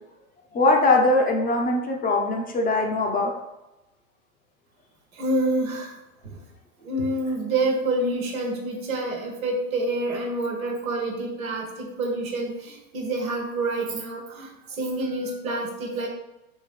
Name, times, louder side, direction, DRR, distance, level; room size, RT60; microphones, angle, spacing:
voice 1, 0.5-3.3, left 2 dB, 20° left, 2 dB, 0.7 m, -21 dB
voice 2, 5.1-5.9 6.2-6.4 6.8-16.1, right 2 dB, 85° right, 0 dB, 1.3 m, -27 dB
4.5 x 3.0 x 3.4 m, 0.95 s
hypercardioid pair, 95°, 41 cm